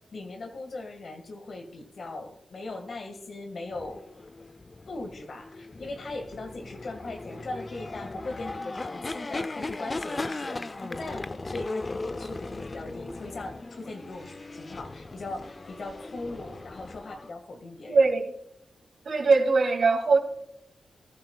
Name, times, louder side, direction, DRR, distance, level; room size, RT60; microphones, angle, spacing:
voice 1, 0.1-4.0 4.9-18.0, left 2 dB, 65° left, 5 dB, 1.9 m, -39 dB
sound 1, 3.7-17.3, left 2 dB, 40° left, 0.6 m, -38 dB
voice 2, 17.9-18.3 19.0-20.2, right 4 dB, 70° right, 4 dB, 2.3 m, -21 dB
19.5 x 10.5 x 2.4 m, 0.78 s
cardioid pair, 50°, 0 cm